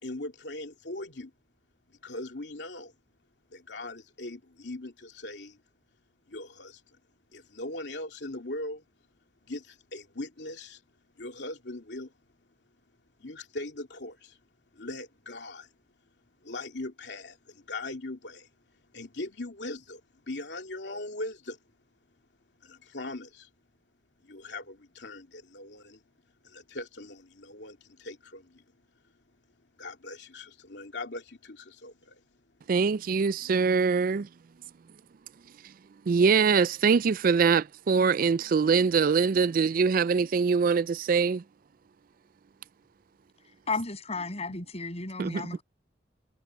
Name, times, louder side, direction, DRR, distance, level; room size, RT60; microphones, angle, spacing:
voice 1, 0.0-1.3 1.9-2.9 3.5-5.6 6.3-7.0 7.3-8.8 9.5-10.8 11.2-12.1 13.2-14.4 14.7-15.7 16.4-18.5 18.9-20.0 20.3-21.6 22.6-23.5 24.2-26.0 26.4-28.6 29.8-32.2, left 2 dB, 70° left, 2.8 m, -40 dB
voice 2, 32.7-34.3 36.1-41.4 45.2-45.4, right 5 dB, 50° right, 0.4 m, -23 dB
voice 3, 43.7-45.6, left 3 dB, 35° left, 7.8 m, -33 dB
head